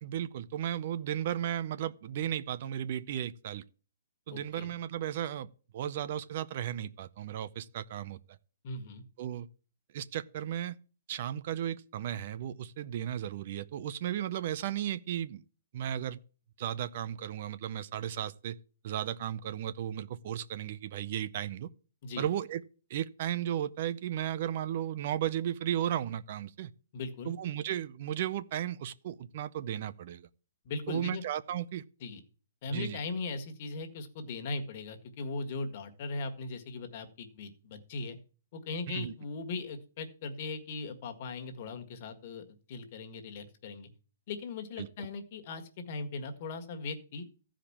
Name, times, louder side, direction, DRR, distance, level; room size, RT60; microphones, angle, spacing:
voice 1, 0.0-3.6 4.3-8.2 9.2-9.5 9.9-10.7 11.1-15.4 15.7-16.2 16.6-18.6 18.8-21.7 22.2-22.6 22.9-26.7 27.2-30.3 30.9-31.8 32.7-33.0 38.9-39.1 44.8-45.1, right 10 dB, 40° right, 0.6 m, -35 dB
voice 2, 4.3-4.7 8.6-9.0 22.0-22.2 26.9-27.3 30.6-31.2 32.0-32.2 32.6-38.2 38.5-43.9 44.3-47.2, left 3 dB, 35° left, 1.7 m, -39 dB
15.0 x 5.1 x 7.2 m
hypercardioid pair, 170°, 0 cm